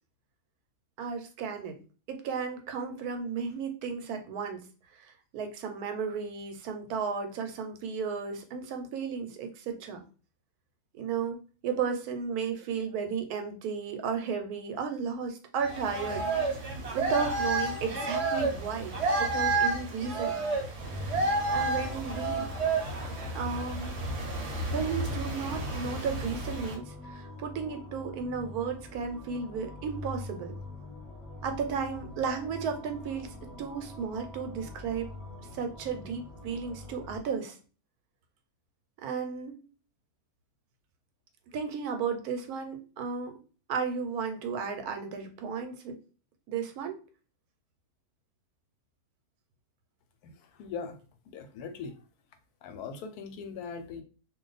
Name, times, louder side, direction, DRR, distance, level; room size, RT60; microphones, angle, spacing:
voice 1, 1.0-1.8 2.1-4.6 4.9-10.0 10.9-11.4 11.6-20.4 21.5-22.5 23.3-24.0 24.7-30.6 31.4-35.1 35.5-37.6 39.0-39.6 41.5-43.4 43.7-46.0 46.5-47.0, right 6 dB, 80° right, 6 dB, 1.1 m, -34 dB
sound 1, 15.6-26.7, right 2 dB, 55° right, 0.9 m, -31 dB
sound 2, 20.8-37.2, left 2 dB, ahead, 0.7 m, -44 dB
voice 2, 50.6-51.0 51.3-52.0 52.6-54.0, left 5 dB, 85° left, 8 dB, 1.1 m, -40 dB
2.5 x 2.3 x 3.9 m, 0.37 s
omnidirectional pair, 1.6 m